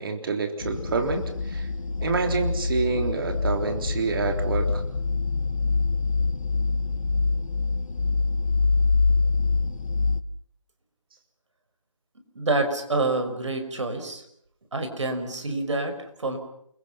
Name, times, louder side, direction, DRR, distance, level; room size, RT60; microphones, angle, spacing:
voice 1, 0.0-1.7 2.0-4.8, right 4 dB, 45° right, 5 dB, 3.6 m, -27 dB
sound 1, 0.6-10.2, left 4 dB, 75° left, 1.2 m, -25 dB
voice 2, 12.3-14.2 14.7-16.4, right 2 dB, 65° right, 6 dB, 5.7 m, -27 dB
29.0 x 22.5 x 5.9 m, 0.71 s
figure-of-eight pair, 155°, 17 cm